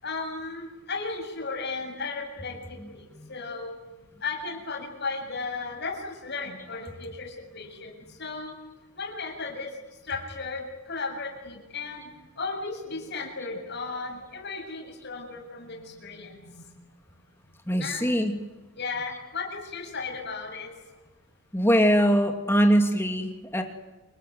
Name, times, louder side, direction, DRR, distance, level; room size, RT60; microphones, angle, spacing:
voice 1, 0.0-3.8 4.2-8.5 8.9-9.7 10.0-12.1 12.4-16.8 17.8-18.1 18.8-20.8, left 4 dB, 50° left, 1 dB, 7.8 m, -35 dB
voice 2, 2.8-3.3 17.7-18.4 21.5-23.6, equal, 10° left, 4 dB, 2.7 m, -23 dB
29.0 x 21.0 x 9.7 m, 1.1 s
head